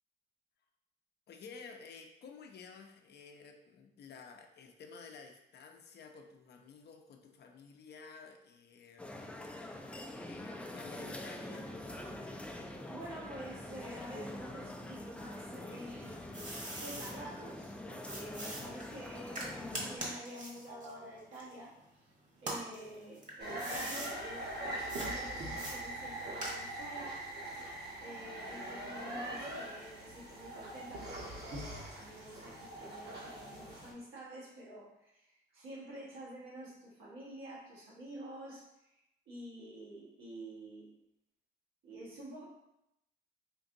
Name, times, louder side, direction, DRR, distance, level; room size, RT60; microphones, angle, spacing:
voice 1, 1.3-9.9 10.3-11.7, left 5 dB, 55° left, 4 dB, 0.6 m, -53 dB
sound 1, 9.0-20.0, left 1 dB, 5° left, 0.4 m, -45 dB
voice 2, 12.9-22.1 22.4-27.3 28.0-38.9 39.2-40.9 41.8-42.4, right 1 dB, 85° right, -6 dB, 1.4 m, -49 dB
sound 2, 15.7-17.1 18.0-21.9 22.3-24.1 24.9-25.1 25.6-26.9, right 1 dB, 40° right, 1.1 m, -43 dB
sound 3, 23.4-33.9, right 1 dB, 55° right, 1.1 m, -42 dB
4.4 x 2.8 x 2.6 m, 0.84 s
cardioid pair, 90°, 20 cm